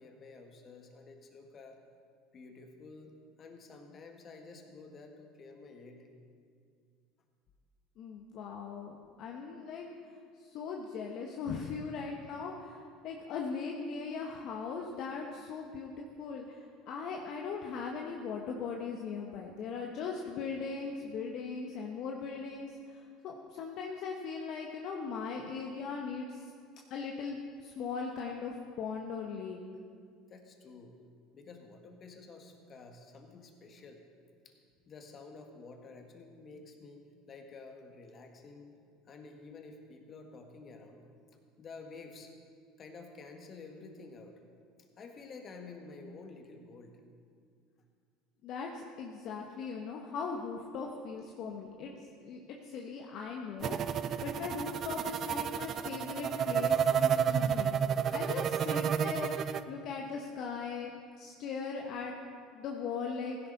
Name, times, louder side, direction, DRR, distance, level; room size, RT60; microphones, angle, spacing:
voice 1, 0.0-1.8 2.3-6.1 30.3-31.0 31.3-34.0 34.5-34.6 34.9-38.8 39.1-41.1 41.6-42.3 42.8-44.4 45.0-47.0, left 3 dB, 40° left, 4 dB, 1.8 m, -50 dB
voice 2, 8.0-9.9 10.4-26.4 26.9-29.6 48.4-51.9 52.2-57.8 58.1-60.9 61.2-62.1 62.6-63.4, left 5 dB, 55° left, 1 dB, 1.1 m, -39 dB
sound 1, 53.6-59.6, right 8 dB, 45° right, 0.5 m, -30 dB
16.0 x 10.5 x 4.1 m, 2.2 s
hypercardioid pair, 85°, 0 cm